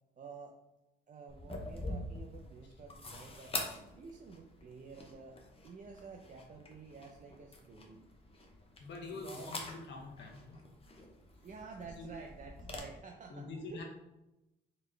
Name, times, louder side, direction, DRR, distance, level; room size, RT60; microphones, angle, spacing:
voice 1, 0.2-0.5 1.1-3.6 4.0-5.4 5.6-8.0 9.1-9.5 11.4-13.8, right 5 dB, 40° right, 1 dB, 0.5 m, -50 dB
sound 1, 1.3-12.8, left 2 dB, 30° left, 0.8 m, -46 dB
voice 2, 8.8-10.6 12.0-12.1 13.3-13.8, left 3 dB, 65° left, 1 dB, 1.2 m, -45 dB
4.0 x 3.2 x 3.3 m, 0.93 s
cardioid pair, 90°, 20 cm